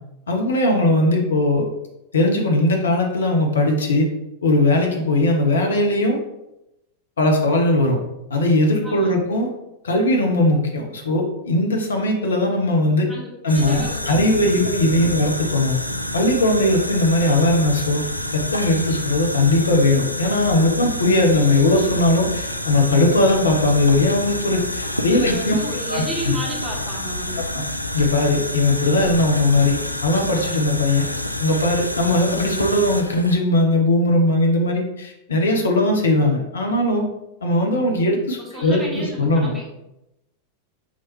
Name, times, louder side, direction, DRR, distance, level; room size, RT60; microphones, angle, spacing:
voice 1, 0.3-1.7 2.1-4.1 4.4-6.2 7.2-8.0 8.3-9.5 9.8-13.1 13.4-15.8 16.1-18.0 18.3-25.6 25.9-26.0 27.5-27.6 27.9-29.8 30.0-31.0 31.4-37.0 37.4-39.5, left 1 dB, 65° left, 2 dB, 0.8 m, -19 dB
voice 2, 8.8-9.2 13.1-14.6 15.0-15.1 25.1-27.4 38.3-39.7, equal, 5° right, -5 dB, 1.5 m, -33 dB
sound 1, 13.5-33.4, left 1 dB, 90° left, 0.3 m, -28 dB
5.6 x 3.1 x 3.0 m, 0.91 s
figure-of-eight pair, 90°, 0 cm